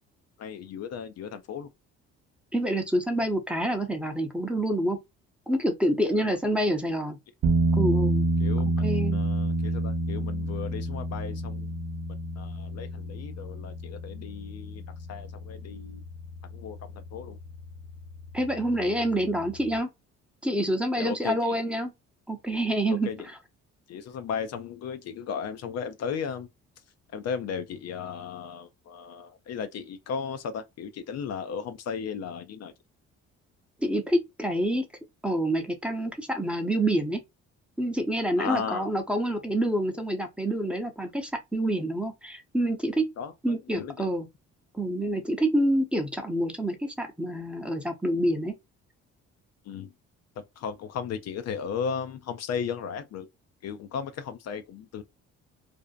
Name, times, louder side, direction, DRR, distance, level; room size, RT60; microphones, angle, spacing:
voice 1, 0.4-1.7 6.1-6.4 8.4-8.7 9.1-11.7 12.4-16.0 16.5-17.4 21.0-21.6 22.9-23.3 23.9-26.5 27.1-32.7 38.4-38.9 43.2-44.1 49.6-49.9 50.4-53.3 53.6-55.0, left 7 dB, 60° left, 0.5 m, -35 dB
voice 2, 2.5-5.0 5.5-7.2 7.7-8.3 8.8-9.2 18.3-19.9 20.4-21.9 22.3-23.1 33.8-34.8 35.2-37.2 37.8-43.1 43.4-44.3 44.7-48.5, right 1 dB, 5° right, 0.7 m, -27 dB
sound 1, 7.4-19.8, right 2 dB, 50° right, 0.5 m, -30 dB
2.6 x 2.1 x 2.4 m
supercardioid pair, 75°, 30 cm